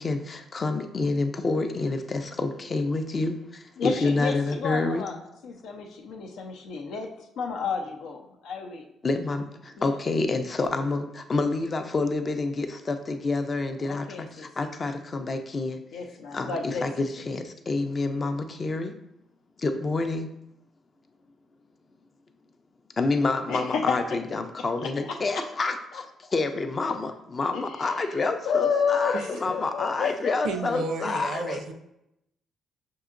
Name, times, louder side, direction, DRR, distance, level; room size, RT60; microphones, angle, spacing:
voice 1, 0.0-5.1 9.0-15.8 16.3-19.0 19.6-20.3 23.0-26.0 26.3-31.6, left 3 dB, 35° left, 7 dB, 0.4 m, -28 dB
voice 2, 3.8-5.1 5.4-7.1 7.4-8.8 9.8-9.9 13.8-14.5 15.9-16.8 23.5-24.0 24.8-24.9 27.5-27.6 28.4-30.6, left 6 dB, 85° left, 2 dB, 0.6 m, -30 dB
voice 3, 30.4-31.7, right 3 dB, 75° right, 5 dB, 0.5 m, -31 dB
6.1 x 2.8 x 2.5 m, 0.82 s
cardioid pair, 95°, 0 cm